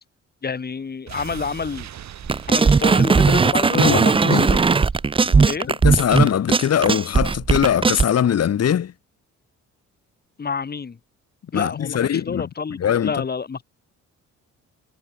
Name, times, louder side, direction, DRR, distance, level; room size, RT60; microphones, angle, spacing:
voice 1, 0.4-1.9 2.5-4.9 5.5-5.7 10.4-11.0 11.5-13.6, left 5 dB, 30° left, 2.1 m, -29 dB
sound 1, 1.1-6.0 6.3-6.4, right 10 dB, 65° right, 3.6 m, -41 dB
sound 2, 2.3-8.0, right 4 dB, 20° right, 0.5 m, -17 dB
voice 2, 3.7-4.4 5.8-8.9 11.5-12.4 12.8-13.1, left 9 dB, 55° left, 2.8 m, -21 dB
cardioid pair, 90°, 30 cm